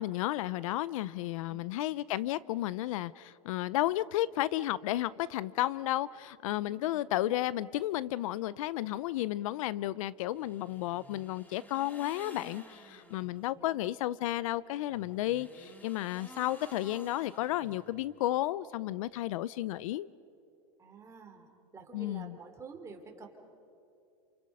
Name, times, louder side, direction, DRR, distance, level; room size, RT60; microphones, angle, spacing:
voice 1, 0.0-20.1 21.9-22.4, left 15 dB, 70° left, 20 dB, 0.6 m, -33 dB
voice 2, 6.6-7.1 13.3-13.8 20.8-23.3, right 4 dB, 15° right, 3 dB, 3.1 m, -50 dB
sound 1, 10.3-13.4 14.9-18.2, left 1 dB, 10° left, 1.9 m, -53 dB
29.0 x 27.5 x 5.5 m, 2.6 s
supercardioid pair, 140°, 18 cm